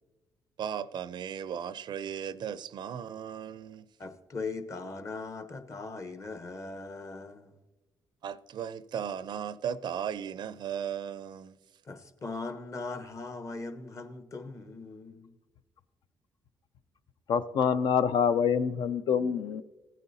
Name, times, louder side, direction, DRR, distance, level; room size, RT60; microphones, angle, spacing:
voice 1, 0.6-3.9 8.2-11.6, right 8 dB, 60° right, 0.4 m, -36 dB
voice 2, 4.0-7.6 11.8-15.3, left 3 dB, 40° left, 1.1 m, -40 dB
voice 3, 17.3-19.6, left 7 dB, 65° left, 0.4 m, -26 dB
16.0 x 9.1 x 2.7 m
cardioid pair, 75°, 8 cm